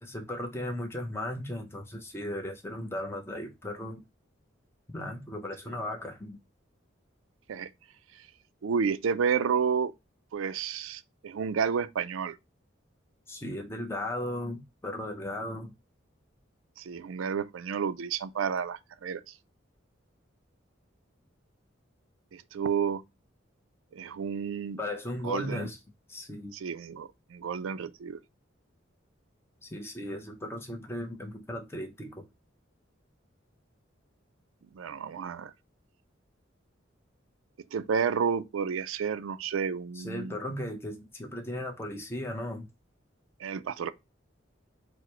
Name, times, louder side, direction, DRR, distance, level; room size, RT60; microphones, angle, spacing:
voice 1, 0.0-4.0 4.9-6.4 13.3-15.7 24.8-25.8 26.1-26.5 29.6-32.2 39.9-42.7, left 1 dB, 15° left, 0.6 m, -36 dB
voice 2, 8.6-9.9 10.3-12.4 16.8-19.3 22.3-23.0 23.9-24.8 25.2-25.7 26.5-28.2 34.7-35.5 37.7-40.4 43.4-43.9, right 6 dB, 85° right, 0.4 m, -31 dB
4.8 x 2.1 x 4.3 m
head